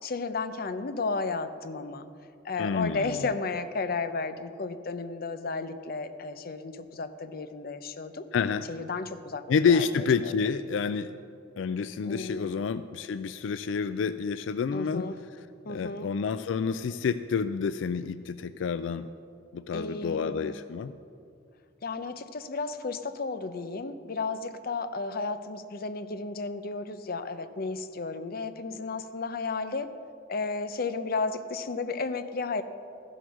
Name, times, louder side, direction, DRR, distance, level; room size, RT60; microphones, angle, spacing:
voice 1, 0.0-2.1 2.4-8.3 8.7-10.4 12.0-12.6 14.7-15.2 15.7-16.1 19.7-20.6 21.8-29.9 30.3-32.6, left 4 dB, 55° left, 10 dB, 0.7 m, -33 dB
voice 2, 2.6-3.2 8.3-8.6 9.5-11.1 11.6-15.1 15.7-19.1 19.5-20.9, left 6 dB, 90° left, 13 dB, 0.4 m, -28 dB
14.0 x 8.0 x 6.3 m, 2.4 s
head